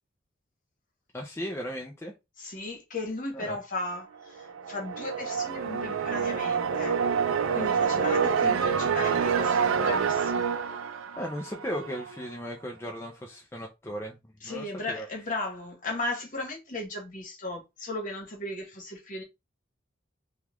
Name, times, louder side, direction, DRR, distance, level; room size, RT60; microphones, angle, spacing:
voice 1, 1.1-2.1 3.3-3.6 11.2-14.2 14.4-15.1, equal, 15° left, 0.4 m, -36 dB
voice 2, 2.4-7.0 7.5-10.6 14.4-19.2, left 2 dB, 40° left, 1.1 m, -36 dB
sound 1, 4.4-12.1, right 6 dB, 90° right, 0.4 m, -27 dB
3.3 x 2.3 x 3.0 m
head